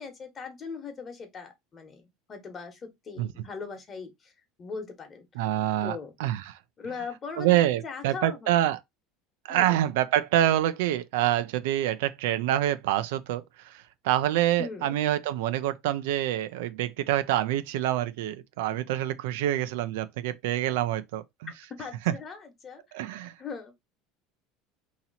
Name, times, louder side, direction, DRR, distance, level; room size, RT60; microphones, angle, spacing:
voice 1, 0.0-4.3 4.6-5.3 5.8-6.1 6.8-8.6 9.5-9.7 14.6-15.0 21.8-22.8 23.4-23.8, left 5 dB, 30° left, 1.2 m, -40 dB
voice 2, 5.4-6.6 7.4-8.8 9.4-21.5 22.1-22.2 22.9-23.3, right 13 dB, 85° right, 0.4 m, -26 dB
2.9 x 2.8 x 4.0 m
supercardioid pair, 120°, 0 cm